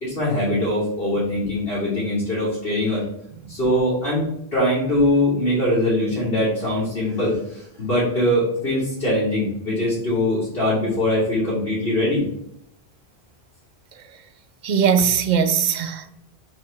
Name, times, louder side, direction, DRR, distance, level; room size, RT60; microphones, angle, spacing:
voice 1, 0.0-3.0 3.5-4.2 4.5-12.2, left 1 dB, 70° left, 2.8 m, -22 dB
voice 2, 14.6-16.2, right 7 dB, 55° right, 0.6 m, -20 dB
5.0 x 4.3 x 4.8 m
omnidirectional pair, 1.0 m